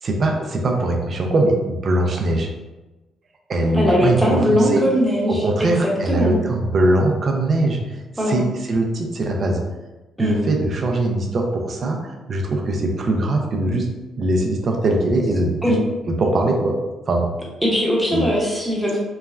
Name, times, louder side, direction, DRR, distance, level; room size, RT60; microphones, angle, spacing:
voice 1, 0.0-2.5 3.5-4.8 5.3-9.6 10.2-13.9 14.2-15.8 16.2-16.7 17.1-17.3 18.1-18.3, right 2 dB, 50° right, 1 dB, 0.4 m, -21 dB
voice 2, 3.7-5.7 6.1-6.3 8.2-8.4 10.2-10.3 15.6-15.8 17.6-19.0, equal, ahead, -4 dB, 0.8 m, -20 dB
3.1 x 2.1 x 2.3 m, 1.1 s
cardioid pair, 90°, 0 cm